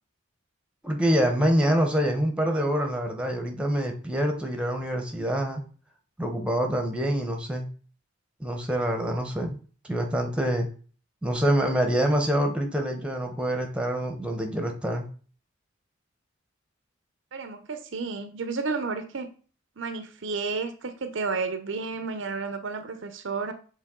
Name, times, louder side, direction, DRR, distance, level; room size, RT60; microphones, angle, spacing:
voice 1, 0.8-5.6 6.2-7.7 8.4-9.6 9.9-10.7 11.2-15.1, equal, 5° right, 4 dB, 0.9 m, -26 dB
voice 2, 17.3-19.3 19.8-23.5, right 4 dB, 60° right, 9 dB, 0.6 m, -31 dB
7.4 x 3.6 x 3.7 m, 0.40 s
head